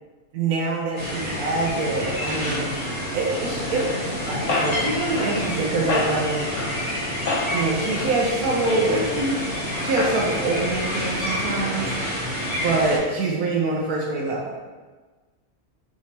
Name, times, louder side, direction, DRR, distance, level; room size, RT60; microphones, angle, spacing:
voice 1, 0.3-6.5 7.5-11.9 12.6-14.6, right 3 dB, 85° right, -2 dB, 1.1 m, -25 dB
sound 1, 1.0-13.0, equal, 10° right, 1.0 m, -29 dB
sound 2, 3.3-10.5, left 3 dB, 55° left, 0.8 m, -30 dB
4.6 x 3.3 x 2.8 m, 1.3 s
omnidirectional pair, 1.5 m